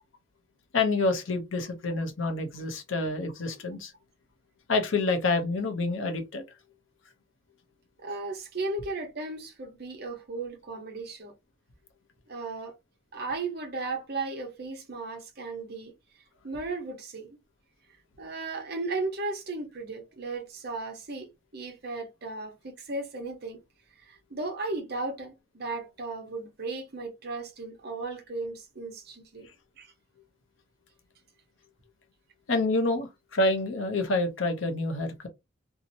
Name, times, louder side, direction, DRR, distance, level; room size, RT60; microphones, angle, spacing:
voice 1, 0.7-3.9 4.7-6.4 32.5-35.3, left 2 dB, 70° left, 0.7 m, -27 dB
voice 2, 8.0-11.3 12.3-12.7 13.1-15.9 16.4-17.4 18.2-23.6 24.0-29.5 29.8-29.9, right 3 dB, 50° right, 0.8 m, -35 dB
2.7 x 2.1 x 2.6 m
head